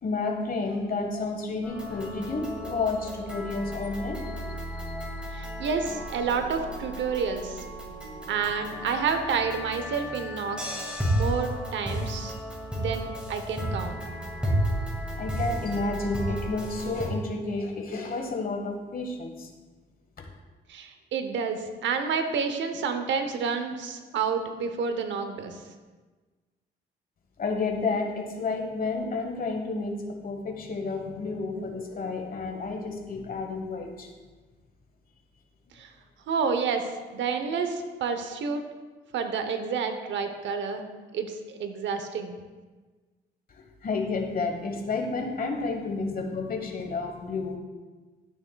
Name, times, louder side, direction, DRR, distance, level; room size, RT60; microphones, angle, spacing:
voice 1, 0.0-4.5 5.0-5.3 6.3-6.4 15.2-19.5 20.2-20.3 27.4-30.0 30.2-34.1 43.6-47.6, left 3 dB, 45° left, 2 dB, 1.2 m, -31 dB
sound 1, 1.6-17.1, equal, 5° right, 2.1 m, -33 dB
voice 2, 5.3-7.6 8.3-12.3 12.8-14.0 20.7-25.6 35.7-35.9 36.3-38.6 39.1-42.4, right 5 dB, 70° right, 7 dB, 0.8 m, -29 dB
12.5 x 6.3 x 2.3 m, 1.3 s
cardioid pair, 90°, 20 cm